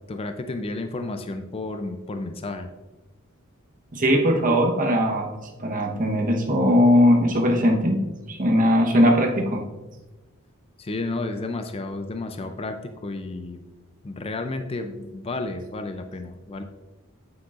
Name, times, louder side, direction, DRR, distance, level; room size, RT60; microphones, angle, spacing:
voice 1, 0.1-2.7 10.8-13.6 14.0-16.6, left 2 dB, 25° left, 7 dB, 0.4 m, -32 dB
voice 2, 3.9-5.3 5.6-8.0 8.3-9.6, equal, 40° right, 2 dB, 1.0 m, -19 dB
8.7 x 7.7 x 2.5 m, 1.1 s
head